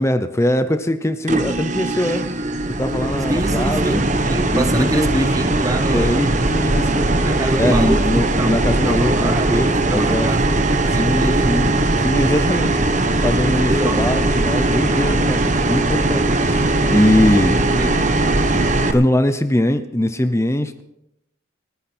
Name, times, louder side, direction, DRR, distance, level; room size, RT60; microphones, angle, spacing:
voice 1, 0.0-2.2 2.8-5.3 5.9-7.1 7.6-10.3 10.9-11.7 12.0-12.8 13.2-17.5 18.6-20.8, left 1 dB, 15° left, 0.7 m, -21 dB
sound 1, 1.3-18.9, right 2 dB, 35° right, 1.1 m, -19 dB
voice 2, 3.3-6.4 7.2-11.7 13.7-14.1 17.5-18.0, right 1 dB, 15° right, 0.8 m, -25 dB
29.0 x 9.7 x 4.4 m
head